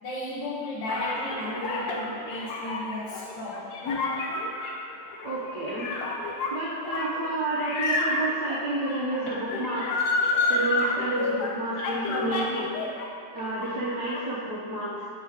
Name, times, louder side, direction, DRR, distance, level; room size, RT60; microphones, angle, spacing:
voice 1, 0.0-3.8, left 1 dB, 85° left, -7 dB, 1.6 m, -34 dB
sound 1, 0.9-13.1 13.4-14.2, left 3 dB, 65° left, 1.1 m, -30 dB
voice 2, 5.2-5.9 6.5-10.0 10.5-12.7 13.3-15.1, right 2 dB, 65° right, -8 dB, 1.3 m, -30 dB
5.0 x 4.4 x 4.7 m, 2.2 s
omnidirectional pair, 2.0 m